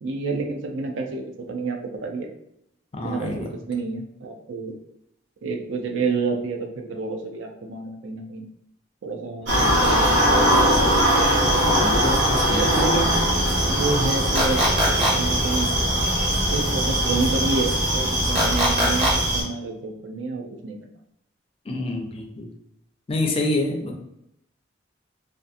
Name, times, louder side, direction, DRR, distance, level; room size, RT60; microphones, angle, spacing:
voice 1, 0.0-1.2 1.5-2.3 3.0-4.8 5.4-8.4 9.0-10.4 11.9-13.2 13.6-14.6 15.1-15.7 16.5-20.9, right 4 dB, 80° right, 3 dB, 0.4 m, -29 dB
voice 2, 2.9-3.5 11.7-12.7 21.7-22.5 23.1-24.0, left 2 dB, 30° left, 2 dB, 0.4 m, -27 dB
sound 1, 9.5-19.4, equal, 65° right, 0.9 m, -21 dB
sound 2, 14.4-15.1 18.4-19.1, equal, 30° right, 0.6 m, -21 dB
2.6 x 2.4 x 2.5 m, 0.80 s
head